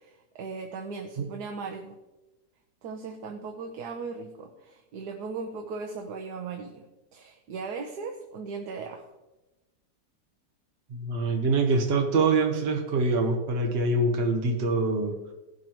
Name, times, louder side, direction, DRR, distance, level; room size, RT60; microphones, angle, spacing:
voice 1, 0.0-2.0 2.8-6.8 7.1-9.1, right 4 dB, 75° right, 4 dB, 1.3 m, -38 dB
voice 2, 10.9-15.3, right 3 dB, 45° right, 2 dB, 1.0 m, -25 dB
16.5 x 6.2 x 2.9 m, 1.0 s
omnidirectional pair, 1.8 m